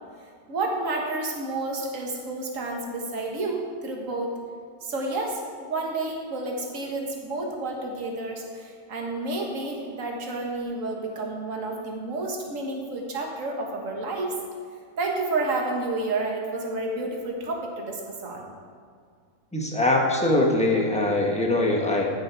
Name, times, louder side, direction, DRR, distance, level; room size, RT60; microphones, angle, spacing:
voice 1, 0.5-4.3 4.8-14.3 15.0-18.5, right 2 dB, 60° right, 0 dB, 1.8 m, -30 dB
voice 2, 19.5-22.1, left 2 dB, 5° left, -1 dB, 1.2 m, -22 dB
14.5 x 6.4 x 4.8 m, 2.2 s
omnidirectional pair, 1.6 m